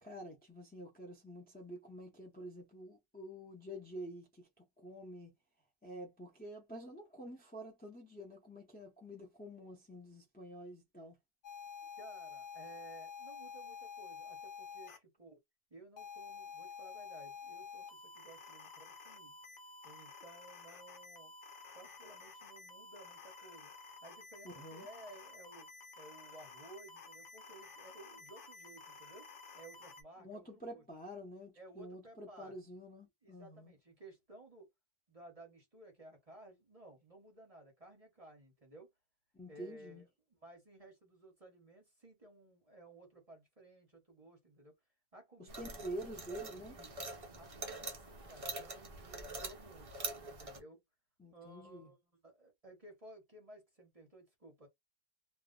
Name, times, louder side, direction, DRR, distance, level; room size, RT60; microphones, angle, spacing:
voice 1, 0.0-5.3 5.8-11.2 24.4-24.9 30.2-33.7 39.3-40.0 45.4-46.8 51.2-51.9, equal, 10° left, 0.4 m, -48 dB
sound 1, 11.4-15.0 16.0-30.0, left 5 dB, 55° left, 1.0 m, -51 dB
voice 2, 12.0-15.4 15.7-19.3 19.8-21.3 21.7-23.7 24.0-25.7 26.0-29.3 29.5-30.8 31.6-32.5 33.2-34.7 35.1-38.9 39.5-40.1 40.4-44.8 45.1-46.0 46.6-46.9 47.3-50.8 51.3-54.7, right 2 dB, 30° right, 0.9 m, -57 dB
sound 2, 45.5-50.6, right 2 dB, 60° right, 0.3 m, -45 dB
2.5 x 2.1 x 3.7 m
omnidirectional pair, 1.6 m